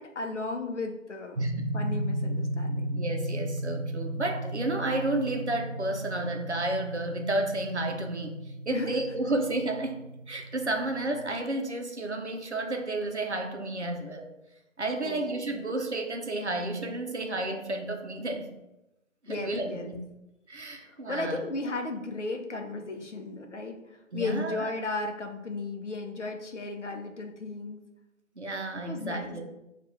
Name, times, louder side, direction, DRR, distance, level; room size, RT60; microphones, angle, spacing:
voice 1, 0.0-2.9 8.7-8.9 15.0-15.6 19.3-19.9 20.7-27.8 28.8-29.3, left 3 dB, 65° left, 3 dB, 0.6 m, -35 dB
sound 1, 1.4-11.1, right 1 dB, 40° right, 1.1 m, -35 dB
voice 2, 2.9-8.4 8.7-14.3 14.8-18.5 19.2-20.0 20.5-21.4 24.1-24.7 28.4-29.4, right 2 dB, 60° right, 3 dB, 0.6 m, -31 dB
4.7 x 2.4 x 3.2 m, 0.92 s
figure-of-eight pair, 180°, 39 cm